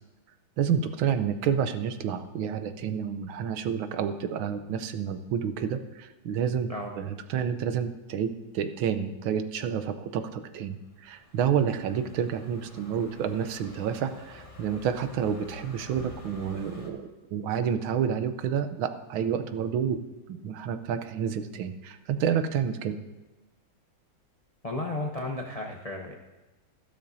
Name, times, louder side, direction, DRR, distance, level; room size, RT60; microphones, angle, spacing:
voice 1, 0.6-6.7 7.0-20.0 20.3-23.0, right 8 dB, 90° right, 9 dB, 1.6 m, -29 dB
Car passing by, 10.9-16.9, left 1 dB, 20° left, 1.0 m, -49 dB
voice 2, 24.6-26.1, left 2 dB, 65° left, 1 dB, 0.3 m, -33 dB
13.5 x 12.0 x 2.7 m, 1.1 s
omnidirectional pair, 2.1 m